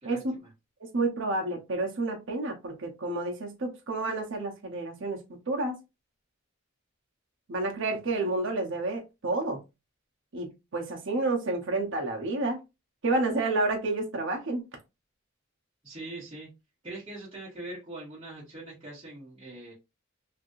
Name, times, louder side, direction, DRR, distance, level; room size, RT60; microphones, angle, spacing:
voice 1, 0.0-0.5 15.8-16.5 16.8-19.7, right 2 dB, 25° right, 1.5 m, -42 dB
voice 2, 0.8-5.2 5.5-5.8 7.5-9.6 10.3-12.6 13.0-14.6, right 2 dB, 65° right, 0.8 m, -30 dB
3.3 x 2.6 x 2.5 m
head